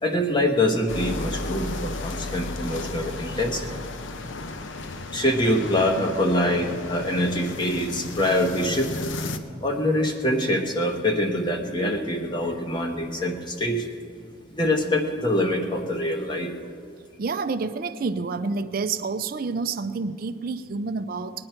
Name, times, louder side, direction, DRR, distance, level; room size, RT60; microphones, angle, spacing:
voice 1, 0.0-3.8 5.1-8.9 9.6-13.9 14.5-16.5, left 1 dB, 25° left, 3 dB, 1.2 m, -24 dB
sound 1, 0.9-9.4, left 2 dB, 80° left, 0.8 m, -34 dB
voice 2, 17.2-21.5, right 4 dB, 50° right, 9 dB, 0.4 m, -28 dB
20.0 x 9.7 x 4.4 m, 2.4 s
head